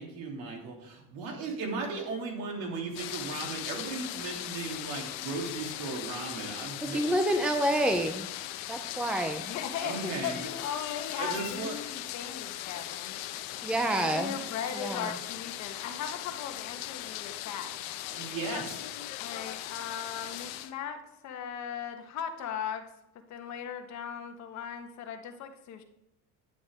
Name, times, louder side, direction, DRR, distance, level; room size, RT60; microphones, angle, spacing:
voice 1, 0.0-7.0 9.8-10.4 11.1-11.8 18.1-18.8, right 3 dB, 75° right, 0 dB, 3.0 m, -36 dB
sound 1, 2.9-20.7, left 13 dB, 75° left, 0.9 m, -39 dB
voice 2, 6.8-8.3 8.7-9.4 13.6-14.4 14.8-15.2, right 1 dB, 5° right, 7 dB, 0.5 m, -28 dB
voice 3, 9.1-13.2 13.9-17.7 19.2-22.8 23.3-25.8, left 8 dB, 50° left, 5 dB, 1.3 m, -38 dB
10.0 x 9.5 x 3.6 m, 0.84 s
cardioid pair, 145°, 35 cm